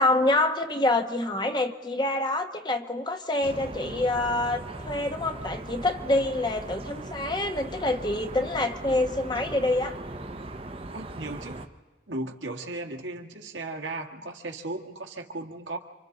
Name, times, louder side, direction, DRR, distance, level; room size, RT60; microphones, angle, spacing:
voice 1, 0.0-10.0, left 2 dB, 25° left, 6 dB, 1.0 m, -26 dB
sound 1, 3.4-11.7, right 2 dB, 30° right, 0.9 m, -39 dB
voice 2, 10.9-11.6 12.1-15.8, right 2 dB, 75° right, 3 dB, 1.9 m, -36 dB
29.0 x 25.5 x 4.0 m, 1.3 s
head